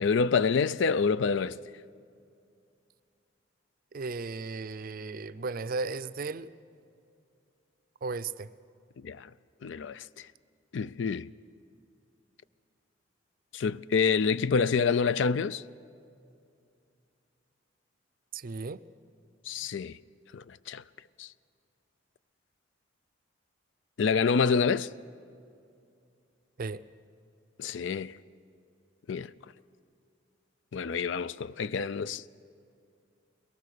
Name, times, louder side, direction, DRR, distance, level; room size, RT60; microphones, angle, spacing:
voice 1, 0.0-1.6 9.0-9.3 9.6-10.3 10.7-11.3 13.5-15.6 19.5-20.0 20.3-20.8 21.2-21.3 24.0-24.9 27.6-28.2 29.1-29.3 30.7-32.3, left 5 dB, 70° left, 0.4 m, -27 dB
voice 2, 3.9-6.5 8.0-8.5 18.3-18.8 26.6-26.8, right 3 dB, 50° right, 0.5 m, -35 dB
22.0 x 18.5 x 6.7 m
head